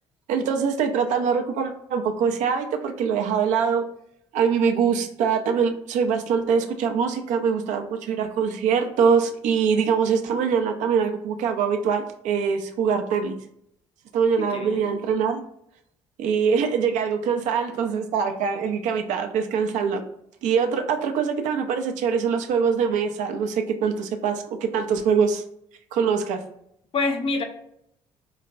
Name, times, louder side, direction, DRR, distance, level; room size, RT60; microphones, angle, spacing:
voice 1, 0.3-3.8 4.3-13.4 14.1-15.4 16.2-20.0 20.4-25.4 25.9-26.4, right 6 dB, 65° right, 5 dB, 0.5 m, -23 dB
voice 2, 14.4-14.9 26.9-27.4, left 3 dB, 45° left, 5 dB, 0.6 m, -26 dB
3.9 x 2.1 x 2.5 m, 0.74 s
hypercardioid pair, 50°, 13 cm